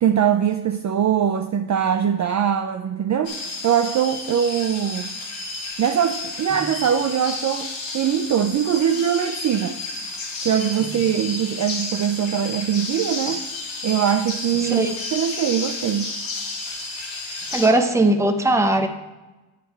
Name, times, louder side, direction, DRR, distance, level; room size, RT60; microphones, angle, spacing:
voice 1, 0.0-3.3 3.6-5.1 5.8-9.8 10.4-13.4 13.8-16.1, right 9 dB, 40° right, 7 dB, 0.4 m, -22 dB
sound 1, 3.2-17.7, left 3 dB, 70° left, 2.2 m, -32 dB
voice 2, 14.6-14.9 17.5-18.9, right 2 dB, 5° right, 4 dB, 0.7 m, -19 dB
8.4 x 7.5 x 4.5 m, 1.1 s
cardioid pair, 125°, 48 cm